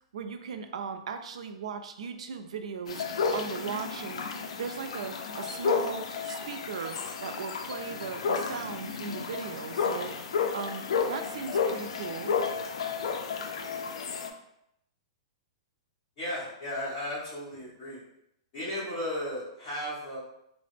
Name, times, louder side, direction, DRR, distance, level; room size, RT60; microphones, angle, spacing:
voice 1, 0.1-4.3 4.6-10.2 10.5-12.3, right 6 dB, 90° right, 7 dB, 0.4 m, -38 dB
sound 1, 2.9-14.3, left 5 dB, 80° left, 0.4 m, -32 dB
voice 2, 16.2-18.0 18.5-20.2, left 1 dB, 25° left, -9 dB, 1.5 m, -35 dB
3.7 x 2.0 x 3.2 m, 0.80 s
supercardioid pair, 170°, 3 cm